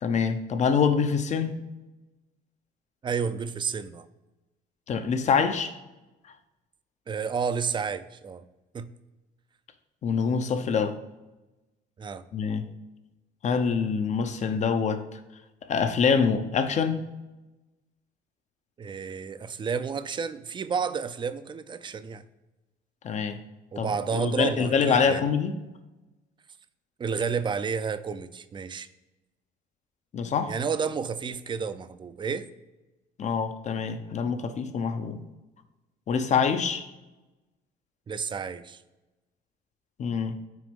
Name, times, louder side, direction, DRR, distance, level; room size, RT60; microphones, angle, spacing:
voice 1, 0.0-1.6 4.9-5.7 10.0-11.0 12.3-12.7 13.4-15.2 15.7-17.1 23.0-23.4 23.8-25.6 30.1-30.5 33.2-35.2 36.1-36.9 40.0-40.4, left 6 dB, 45° left, 9 dB, 0.8 m, -25 dB
voice 2, 3.0-4.1 7.1-8.4 8.7-8.9 12.0-12.2 18.8-22.2 23.7-25.3 27.0-28.9 30.5-32.5 38.1-38.8, right 6 dB, 30° right, 12 dB, 0.5 m, -31 dB
6.2 x 4.3 x 5.3 m, 1.1 s
cardioid pair, 110°, 17 cm